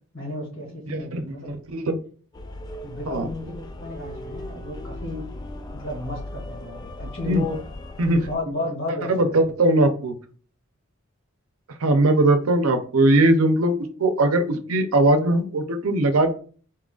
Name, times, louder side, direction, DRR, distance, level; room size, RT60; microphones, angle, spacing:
voice 1, 0.1-1.7 2.8-5.3 5.7-7.6 8.2-9.3, left 2 dB, 60° left, -1 dB, 2.1 m, -33 dB
voice 2, 0.9-2.0 3.1-3.3 7.3-7.4 8.0-8.3 9.1-10.1 11.8-13.7 14.0-16.3, right 2 dB, 90° right, 7 dB, 0.6 m, -20 dB
sound 1, 2.3-8.4, left 1 dB, 20° left, 0.3 m, -37 dB
4.3 x 3.8 x 2.4 m, 0.41 s
head